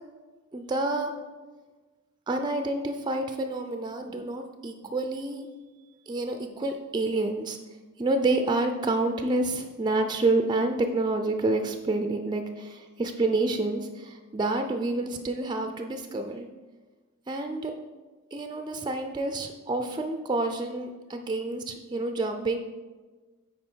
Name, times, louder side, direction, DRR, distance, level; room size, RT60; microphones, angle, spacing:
voice 1, 0.5-1.1 2.3-5.5 6.1-7.6 8.0-16.5 17.3-17.7 18.3-22.6, right 2 dB, 20° right, 6 dB, 0.4 m, -28 dB
8.9 x 4.8 x 4.4 m, 1.3 s
head